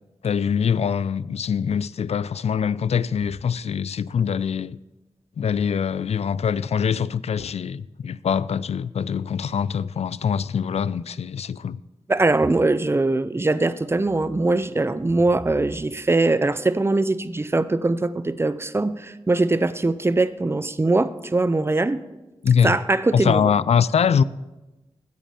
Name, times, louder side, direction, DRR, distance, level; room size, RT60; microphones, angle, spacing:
voice 1, 0.2-4.8 5.4-11.8 22.4-22.8 23.1-24.2, left 7 dB, 75° left, 0.4 m, -23 dB
voice 2, 12.1-22.0 22.6-23.4, right 2 dB, 20° right, 0.5 m, -21 dB
9.5 x 8.3 x 6.8 m
wide cardioid pair, 70°, 11 cm